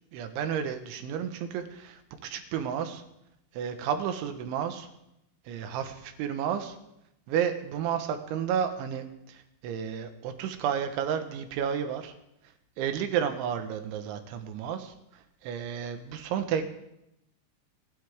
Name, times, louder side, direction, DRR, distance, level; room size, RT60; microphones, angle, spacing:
voice 1, 0.1-3.0 3.5-4.9 5.5-6.8 7.3-12.1 12.8-15.0 15.4-16.7, right 8 dB, 75° right, 7 dB, 3.4 m, -31 dB
28.5 x 11.5 x 3.6 m, 0.84 s
omnidirectional pair, 5.9 m